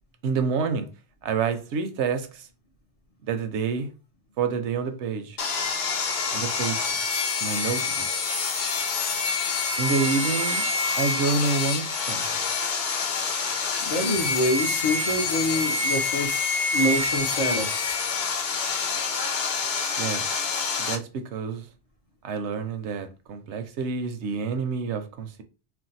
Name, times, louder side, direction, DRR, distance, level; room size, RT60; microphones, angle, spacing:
voice 1, 0.2-0.9 1.2-2.5 3.3-3.9 4.4-5.4 6.3-6.8 7.4-8.1 9.8-10.7 11.0-12.2 20.0-20.2 20.8-21.7 22.2-25.4, right 5 dB, 80° right, 0.9 m, -28 dB
Sawing, 5.4-20.9, left 4 dB, 65° left, 0.8 m, -27 dB
voice 2, 13.8-17.7, left 1 dB, 40° left, 0.6 m, -26 dB
2.5 x 2.1 x 4.0 m
omnidirectional pair, 1.1 m